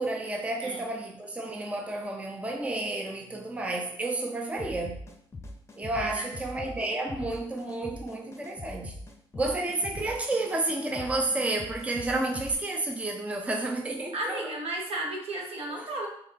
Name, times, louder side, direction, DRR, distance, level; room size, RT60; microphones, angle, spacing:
voice 1, 0.0-5.0 5.8-9.0 9.3-14.4, right 2 dB, 10° right, 1 dB, 0.5 m, -31 dB
sound 1, 4.6-12.5, left 2 dB, 25° left, 0.7 m, -42 dB
voice 2, 14.1-16.1, right 1 dB, 65° right, -1 dB, 1.3 m, -34 dB
3.6 x 3.5 x 4.1 m, 0.69 s
cardioid pair, 105°, 11 cm